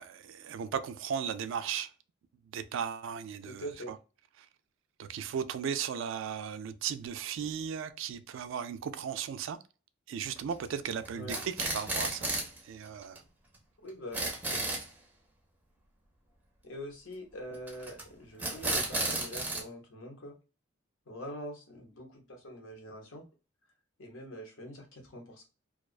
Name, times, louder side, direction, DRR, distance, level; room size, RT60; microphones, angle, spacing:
voice 1, 0.0-1.9 2.5-4.0 5.0-9.6 10.1-12.3 12.6-13.2, right 7 dB, 70° right, 0.3 m, -36 dB
voice 2, 3.4-3.9 11.1-11.4 13.8-14.8 16.6-20.3 21.1-23.2 24.0-25.4, equal, 70° left, 0.9 m, -44 dB
sound 1, 10.3-10.7 11.0-12.6 12.9-13.0 13.2-13.3 13.5-13.6 13.9-14.9 17.7-18.0 18.4-19.6, right 2 dB, 10° right, 0.5 m, -33 dB
2.4 x 2.2 x 2.3 m
head